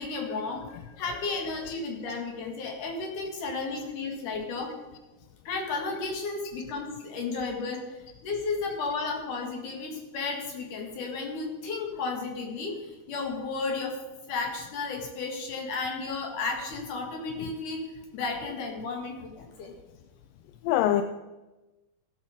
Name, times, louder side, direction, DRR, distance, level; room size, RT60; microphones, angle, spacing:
voice 1, 0.0-0.6 1.0-4.7 5.4-7.8 8.2-14.0 14.3-17.8 18.1-19.7, left 4 dB, 60° left, 2 dB, 3.2 m, -33 dB
voice 2, 1.1-1.7 20.7-21.0, left 12 dB, 80° left, 9 dB, 2.1 m, -27 dB
15.0 x 7.1 x 5.0 m, 1.1 s
omnidirectional pair, 4.2 m